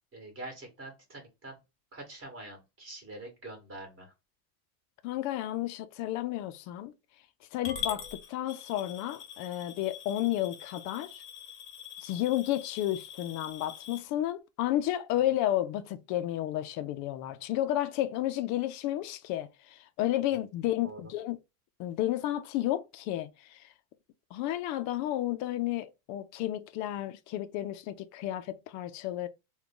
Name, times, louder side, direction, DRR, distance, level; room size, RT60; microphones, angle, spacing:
voice 1, 0.1-1.6 1.9-4.1 20.3-20.4 20.8-21.0, right 2 dB, 25° right, 2.0 m, -45 dB
voice 2, 5.0-6.9 7.5-11.2 12.0-21.4 21.8-23.7 24.3-29.3, left 13 dB, 40° left, 0.4 m, -32 dB
Coin (dropping) / Glass, 7.6-14.0, left 8 dB, 25° left, 0.8 m, -43 dB
3.5 x 2.3 x 3.7 m
supercardioid pair, 140°, 46 cm